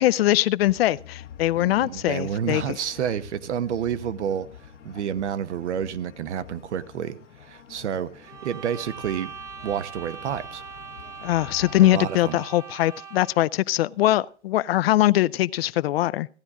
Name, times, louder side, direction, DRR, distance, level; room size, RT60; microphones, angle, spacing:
voice 1, 0.0-2.6 11.2-16.3, left 15 dB, 55° left, 0.5 m, -22 dB
sound 1, 0.6-12.1, left 9 dB, 85° left, 1.5 m, -47 dB
voice 2, 1.6-9.3 9.6-10.6 11.8-12.4, right 8 dB, 75° right, 1.1 m, -30 dB
sound 2, 8.2-13.5, right 7 dB, 10° right, 0.8 m, -41 dB
15.5 x 10.0 x 3.6 m
hypercardioid pair, 130°, 35 cm